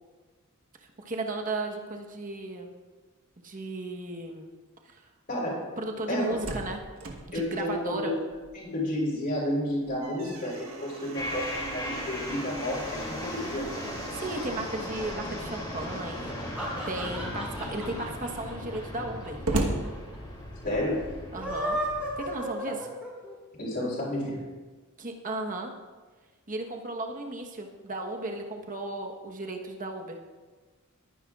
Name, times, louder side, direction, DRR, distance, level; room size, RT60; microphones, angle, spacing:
voice 1, 1.0-2.7 3.4-4.5 4.8-5.0 5.8-6.8 7.3-8.1 14.1-16.4 16.9-19.4 21.3-21.8 22.2-22.8 25.0-25.7 26.5-30.2, right 2 dB, 35° right, 2 dB, 1.1 m, -35 dB
voice 2, 5.3-5.7 6.1-6.4 7.3-8.1 8.5-13.7 20.6-21.1 23.6-24.4, left 1 dB, 45° left, -10 dB, 3.7 m, -31 dB
Slam, 6.0-8.8 9.2-9.3 9.7-15.4 16.2-16.8 17.3-17.4 17.6-20.8, right 2 dB, 70° right, 1.3 m, -38 dB
sound 1, 11.1-22.3, left 1 dB, 20° left, 2.7 m, -37 dB
sound 2, 16.2-19.5 19.8-19.9 20.1-20.2 21.2-23.3, equal, 5° right, 3.7 m, -34 dB
21.0 x 10.0 x 2.4 m, 1.4 s
head